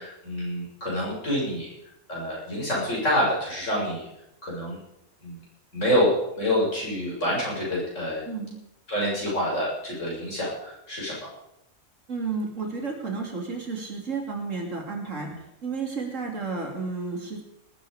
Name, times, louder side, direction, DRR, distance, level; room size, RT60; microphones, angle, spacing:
voice 1, 0.0-1.7 2.1-4.1 4.4-4.8 5.2-5.4 5.7-8.2 8.9-11.1, equal, 55° left, -4 dB, 7.1 m, -27 dB
voice 2, 8.3-8.6 12.1-15.3 15.6-17.4, right 4 dB, 60° right, 1 dB, 3.2 m, -32 dB
19.5 x 13.0 x 5.0 m, 0.83 s
omnidirectional pair, 1.5 m